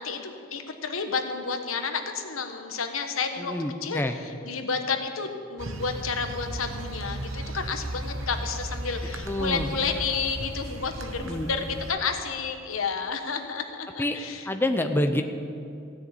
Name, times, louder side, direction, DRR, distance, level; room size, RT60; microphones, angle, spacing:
voice 1, 0.0-3.5 3.8-14.5, left 5 dB, 85° left, 6 dB, 1.2 m, -31 dB
voice 2, 3.4-4.2 9.2-9.7 11.2-11.5 14.0-14.2 14.5-15.2, left 1 dB, 10° left, 6 dB, 0.6 m, -27 dB
sound 1, 5.6-11.9, right 1 dB, 70° right, 1.0 m, -35 dB
16.0 x 6.5 x 8.9 m, 2.5 s
head